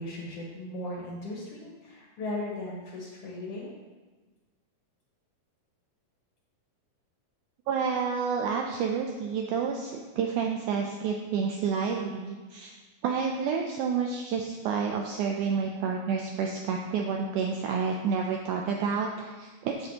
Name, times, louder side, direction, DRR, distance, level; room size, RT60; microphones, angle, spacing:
voice 1, 0.0-3.7, left 1 dB, 65° left, -3 dB, 1.6 m, -37 dB
voice 2, 7.7-12.7 13.0-19.9, right 6 dB, 90° right, 1 dB, 1.7 m, -29 dB
9.2 x 8.0 x 2.8 m, 1.3 s
omnidirectional pair, 4.2 m